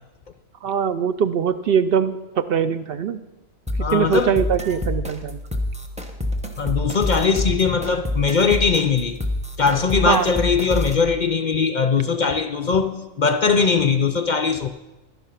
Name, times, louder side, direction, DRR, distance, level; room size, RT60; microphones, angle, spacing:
voice 1, 0.6-3.2 3.9-5.4 10.0-10.3, right 7 dB, 65° right, 0.6 m, -22 dB
sound 1, 3.7-11.1, left 1 dB, 5° right, 0.9 m, -27 dB
voice 2, 3.8-4.4 6.6-9.2 9.6-14.7, left 5 dB, 60° left, 0.5 m, -20 dB
12.0 x 10.5 x 5.7 m
omnidirectional pair, 1.4 m